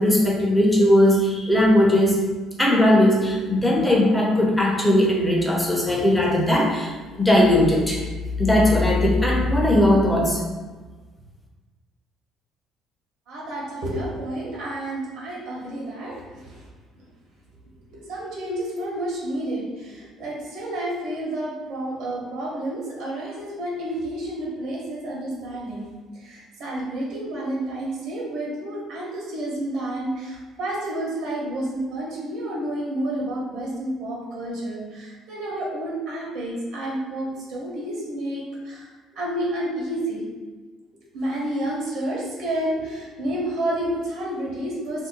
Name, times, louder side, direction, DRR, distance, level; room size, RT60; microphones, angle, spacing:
voice 1, 0.0-2.2 2.6-8.0 8.4-10.4, left 1 dB, 10° left, -3 dB, 0.8 m, -18 dB
voice 2, 13.3-16.6 18.1-25.9 26.1-40.2 41.1-45.1, right 1 dB, 75° right, -4 dB, 1.1 m, -30 dB
2.7 x 2.1 x 3.9 m, 1.3 s
supercardioid pair, 90°, 0 cm